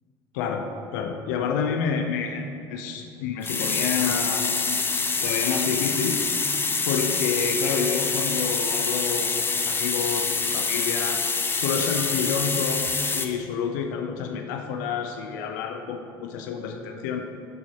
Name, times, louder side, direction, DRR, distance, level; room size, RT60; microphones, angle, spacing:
voice 1, 0.3-4.8 5.2-6.2 6.8-11.2 11.5-17.2, left 6 dB, 90° left, 4 dB, 0.6 m, -29 dB
sound 1, 3.4-13.3, left 4 dB, 20° left, 0.7 m, -26 dB
12.0 x 4.2 x 4.4 m, 2.5 s
supercardioid pair, 90°, 10 cm